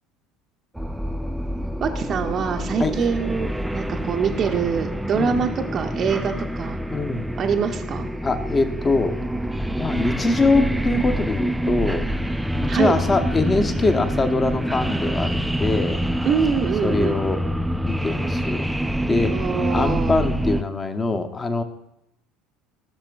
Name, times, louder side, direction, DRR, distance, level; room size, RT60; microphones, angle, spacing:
sound 1, 0.8-20.6, equal, 5° right, 0.4 m, -26 dB
voice 1, 1.8-6.8 7.4-8.1 12.6-12.9 16.2-17.2 19.3-20.2, right 6 dB, 40° right, 3 dB, 0.6 m, -24 dB
voice 2, 6.9-7.3 8.2-9.1 9.8-12.1 12.6-16.0 16.8-17.4 17.9-18.6 19.1-19.3 19.7-21.6, left 3 dB, 25° left, 8 dB, 0.9 m, -23 dB
16.5 x 6.6 x 2.4 m, 0.80 s
figure-of-eight pair, 65°, 0 cm